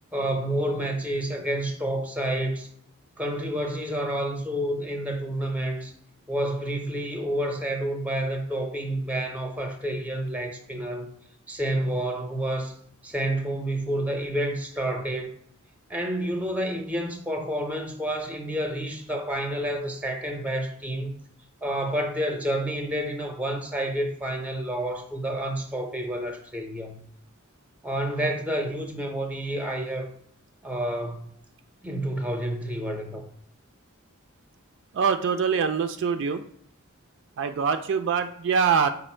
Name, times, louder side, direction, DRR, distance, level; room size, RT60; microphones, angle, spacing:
voice 1, 0.1-2.7 3.2-5.9 6.3-11.1 11.5-12.7 13.0-15.3 15.9-21.2 21.6-27.0 27.8-30.1 30.6-31.3 31.8-33.2, right 1 dB, 5° right, 0.6 m, -29 dB
voice 2, 34.9-36.4 37.4-38.9, right 6 dB, 60° right, 0.3 m, -24 dB
5.1 x 2.0 x 4.3 m
head